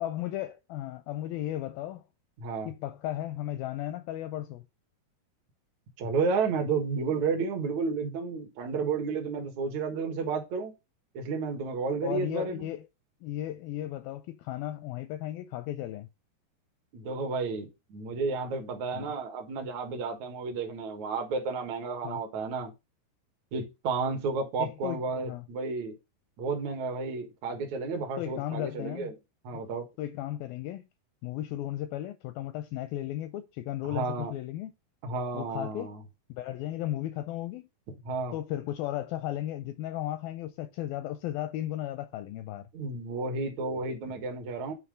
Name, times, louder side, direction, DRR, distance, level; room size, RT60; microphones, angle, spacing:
voice 1, 0.0-2.1 2.7-4.6 12.0-12.9 13.2-16.1 18.9-19.1 22.0-22.2 24.6-25.5 28.2-29.1 30.0-30.8 31.2-34.7 35.3-35.9 36.3-37.7 38.3-42.7, left 13 dB, 80° left, 2.1 m, -35 dB
voice 2, 2.4-2.7 6.0-10.7 11.1-12.7 16.9-22.7 23.5-26.0 26.4-29.1 29.4-29.8 33.9-34.3 35.0-36.0 38.1-38.3 42.7-44.7, right 4 dB, 55° right, 2.4 m, -32 dB
9.2 x 3.2 x 6.2 m
omnidirectional pair, 4.6 m